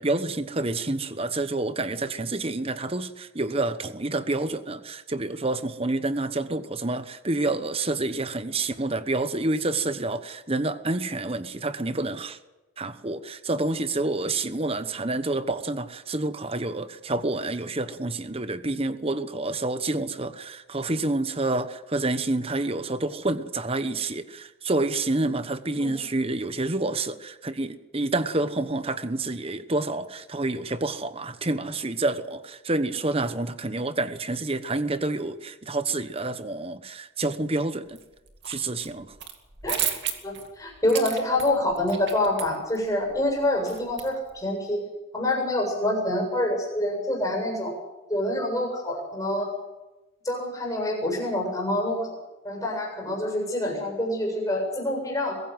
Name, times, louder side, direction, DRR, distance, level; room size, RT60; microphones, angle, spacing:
voice 1, 0.0-12.4 12.8-38.0 38.5-39.2, right 2 dB, 30° right, 12 dB, 1.0 m, -28 dB
sound 1, 38.0-38.6 38.8-44.4, right 9 dB, 55° right, 2.5 m, -33 dB
voice 2, 40.2-44.8 45.1-47.8 48.1-49.5 50.2-52.1 52.4-55.3, left 1 dB, 15° left, 0 dB, 7.6 m, -26 dB
23.0 x 16.0 x 7.9 m, 1.1 s
head